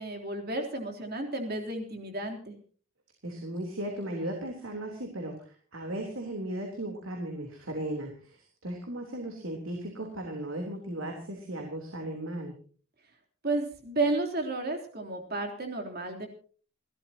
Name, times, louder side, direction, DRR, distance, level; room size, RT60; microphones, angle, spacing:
voice 1, 0.0-2.6 13.4-16.3, right 2 dB, 50° right, 2 dB, 3.4 m, -32 dB
voice 2, 3.2-12.6, right 1 dB, 75° right, 2 dB, 3.5 m, -36 dB
29.5 x 13.5 x 2.9 m, 0.42 s
head